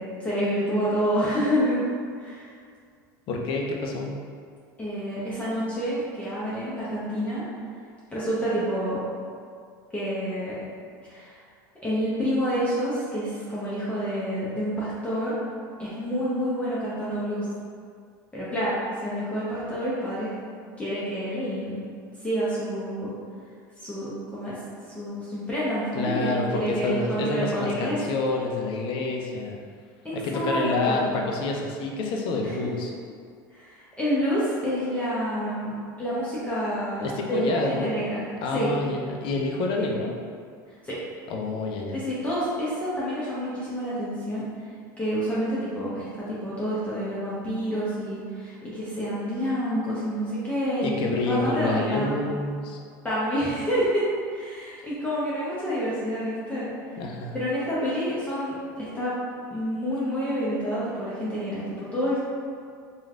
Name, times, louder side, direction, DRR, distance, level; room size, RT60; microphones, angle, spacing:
voice 1, 0.0-1.8 2.2-2.5 4.8-7.4 8.1-9.0 9.9-10.6 11.0-11.4 11.8-15.3 15.8-17.4 18.3-18.7 19.0-20.4 20.8-21.8 22.2-23.1 23.8-24.6 24.9-28.2 30.0-31.2 32.4-32.5 33.5-38.7 39.8-39.9 40.8-41.0 41.9-44.4 45.0-50.9 51.3-52.2 53.0-54.0 54.3-56.7 57.3-59.1 59.5-62.2, equal, 10° left, -10 dB, 0.7 m, -28 dB
voice 2, 3.3-4.2 25.9-29.6 30.1-32.9 37.0-37.9 38.4-40.1 41.3-42.0 50.8-52.8 57.0-57.4, left 3 dB, 50° left, 1 dB, 0.5 m, -28 dB
3.1 x 2.3 x 2.4 m, 2.2 s
hypercardioid pair, 90°, 11 cm